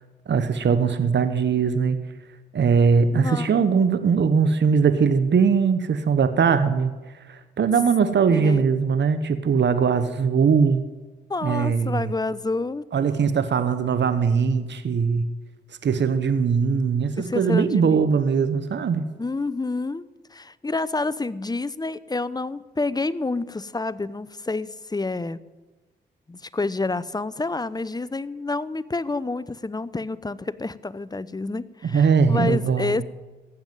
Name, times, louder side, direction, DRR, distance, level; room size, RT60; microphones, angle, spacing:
voice 1, 0.3-2.0 2.5-6.9 7.3-10.8 11.4-12.1 12.9-15.3 15.8-19.1 31.9-33.0, right 6 dB, 60° right, 11 dB, 1.1 m, -20 dB
voice 2, 3.1-3.5 8.3-8.7 11.3-12.8 17.2-18.1 19.2-20.1 20.3-25.4 26.3-33.0, left 3 dB, 20° left, 18 dB, 0.7 m, -28 dB
15.5 x 7.2 x 9.2 m, 1.2 s
supercardioid pair, 45°, 21 cm